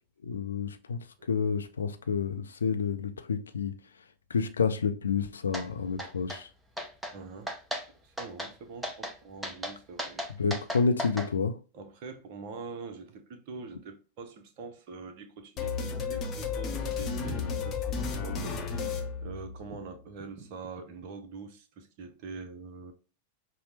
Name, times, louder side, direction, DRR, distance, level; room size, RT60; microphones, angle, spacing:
voice 1, 0.2-1.0 1.3-3.7 4.3-6.5 10.4-11.5, left 5 dB, 70° left, 0.4 m, -29 dB
sound 1, 5.5-5.7 6.0-6.4 6.8-7.1 7.5-7.8 8.2-8.5 8.8-9.1 9.4-11.3, equal, 5° right, 0.7 m, -35 dB
voice 2, 7.1-10.2 11.7-22.9, right 4 dB, 45° right, 0.6 m, -44 dB
sound 2, 15.6-19.9, left 5 dB, 30° left, 0.7 m, -33 dB
5.6 x 2.0 x 2.8 m
figure-of-eight pair, 90°, 0 cm